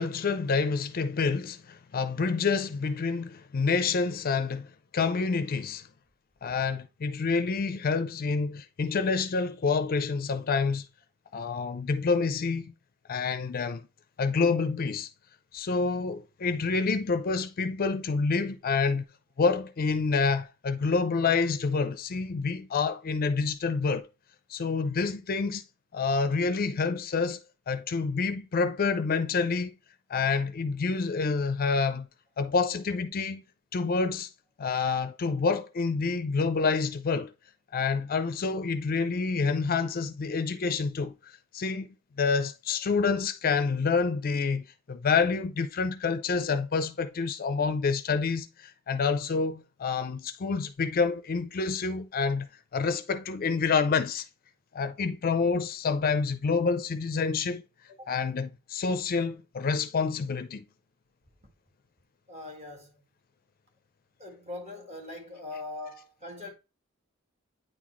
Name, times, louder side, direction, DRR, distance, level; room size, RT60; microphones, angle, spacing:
voice 1, 0.0-5.9 6.4-10.9 11.3-12.7 13.1-13.8 14.2-15.1 15.5-19.0 19.4-24.1 24.5-25.6 25.9-27.4 27.7-29.7 30.1-32.1 32.4-33.4 33.7-34.3 34.6-37.3 37.7-52.5 52.7-54.2 54.7-57.6 58.1-60.6, left 4 dB, 45° left, 0.5 m, -28 dB
voice 2, 62.3-63.0 64.2-66.5, left 2 dB, 35° right, 1.7 m, -41 dB
9.0 x 3.9 x 3.0 m
head